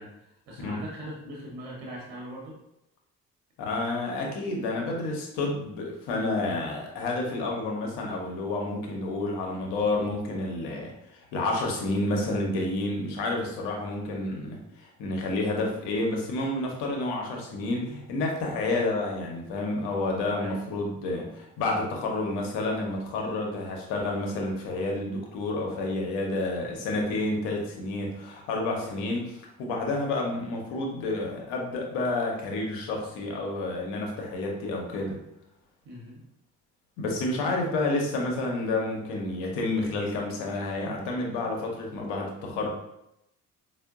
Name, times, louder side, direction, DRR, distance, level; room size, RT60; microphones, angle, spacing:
voice 1, 0.0-2.6 20.4-20.6 26.6-26.7 28.8-28.9 35.8-36.2 37.4-37.5, equal, 55° right, -3 dB, 1.0 m, -41 dB
voice 2, 3.6-29.2 29.6-35.2 37.0-42.7, left 2 dB, 60° left, 0 dB, 0.9 m, -30 dB
4.3 x 2.2 x 2.3 m, 0.84 s
figure-of-eight pair, 45°, 47 cm